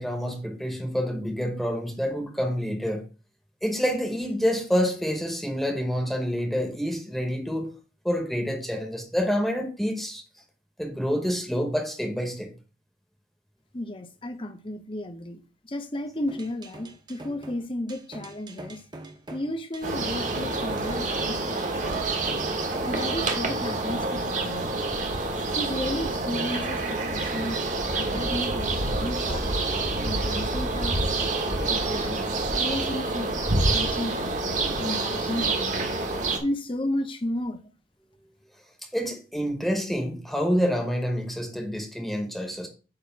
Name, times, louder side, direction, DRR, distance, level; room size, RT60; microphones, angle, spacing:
voice 1, 0.0-3.0 3.6-7.7 8.0-10.2 10.8-12.5 38.9-42.7, equal, ahead, 1.0 m, -27 dB
voice 2, 13.7-18.8 19.3-22.1 22.8-24.7 25.6-29.8 30.0-32.2 32.6-35.9 36.4-37.6, left 1 dB, 30° left, 0.8 m, -33 dB
sound 1, 16.3-23.2, right 1 dB, 25° right, 0.8 m, -44 dB
sound 2, 19.8-36.4, right 2 dB, 40° right, 1.1 m, -27 dB
8.7 x 3.0 x 5.7 m
head